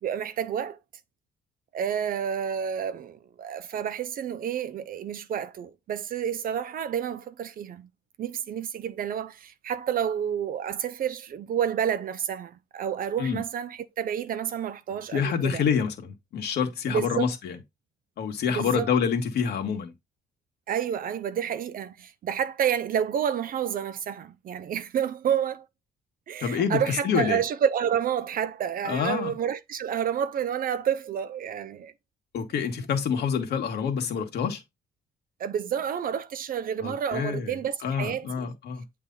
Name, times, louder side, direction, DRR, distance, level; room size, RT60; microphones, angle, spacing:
voice 1, 0.0-0.8 1.7-7.9 8.2-15.6 16.9-17.3 18.5-18.9 20.7-25.6 26.3-31.9 35.4-38.5, right 8 dB, 55° right, 0.7 m, -29 dB
voice 2, 15.1-17.6 18.2-19.9 26.4-27.4 28.8-29.3 32.3-34.6 36.8-37.6 37.8-39.0, left 7 dB, 70° left, 1.8 m, -27 dB
8.2 x 3.3 x 4.0 m
cardioid pair, 125°, 17 cm